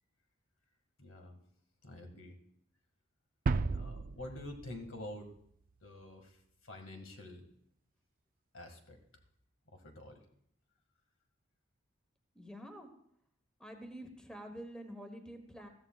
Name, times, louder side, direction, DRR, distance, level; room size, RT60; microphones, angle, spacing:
voice 1, 1.0-1.4 1.8-2.4 3.7-5.3 5.8-7.5 8.5-9.0 9.7-10.3, left 1 dB, 75° left, 4 dB, 2.0 m, -48 dB
sound 1, 3.5-5.5, right 4 dB, 45° right, 0.4 m, -35 dB
voice 2, 12.3-12.9 13.6-15.7, equal, 5° left, 4 dB, 1.2 m, -47 dB
21.0 x 14.0 x 2.4 m, 0.71 s
head